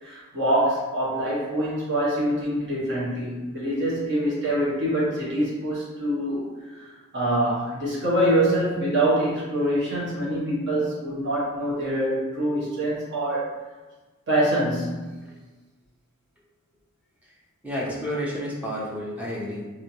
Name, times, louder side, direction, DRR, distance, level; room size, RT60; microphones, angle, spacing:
voice 1, 0.0-13.5 14.3-15.1, right 1 dB, 50° right, -7 dB, 1.2 m, -25 dB
voice 2, 17.6-19.7, equal, 5° right, -5 dB, 0.6 m, -30 dB
3.2 x 2.8 x 2.7 m, 1.3 s
head